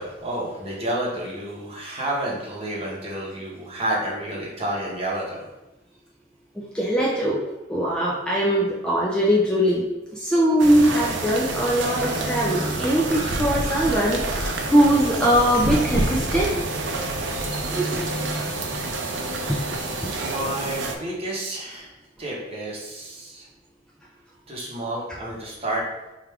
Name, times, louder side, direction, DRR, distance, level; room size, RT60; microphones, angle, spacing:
voice 1, 0.0-5.4 20.2-21.9 22.2-23.5 24.5-25.8, right 1 dB, 30° right, -4 dB, 0.9 m, -30 dB
voice 2, 6.5-9.8 10.1-16.6 17.6-17.8 19.5-19.6 20.0-20.1, equal, 5° left, -5 dB, 0.3 m, -21 dB
sound 1, 10.6-21.0, right 2 dB, 70° right, 0.5 m, -28 dB
Crow, 11.4-20.4, right 1 dB, 90° right, 0.9 m, -36 dB
4.5 x 2.4 x 3.4 m, 1.0 s
head